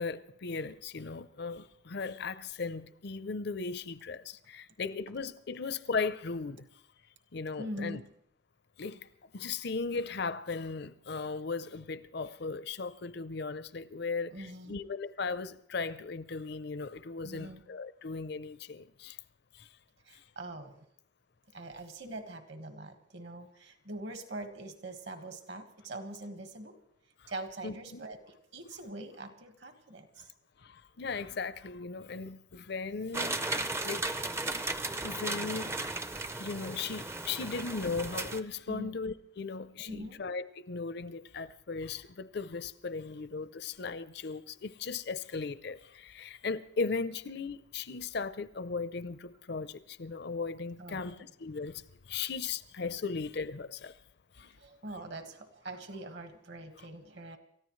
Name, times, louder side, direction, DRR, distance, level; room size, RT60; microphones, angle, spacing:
voice 1, 0.0-6.7 7.3-8.0 8.8-9.0 9.3-19.2 19.6-19.7 27.6-28.0 30.6-34.2 35.0-35.7 36.4-51.8 52.1-53.9 54.4-54.5, left 4 dB, 55° left, 0.6 m, -37 dB
voice 2, 7.5-8.0 14.3-14.8 17.2-17.6 20.0-20.7 21.5-26.7 27.3-30.3 36.2-36.4 38.6-38.9 39.8-40.2 50.8-51.3 52.1-52.2 54.4-57.4, right 1 dB, 55° right, 1.6 m, -43 dB
sound 1, 33.1-38.4, right 2 dB, 15° right, 0.5 m, -35 dB
28.5 x 14.0 x 3.2 m
head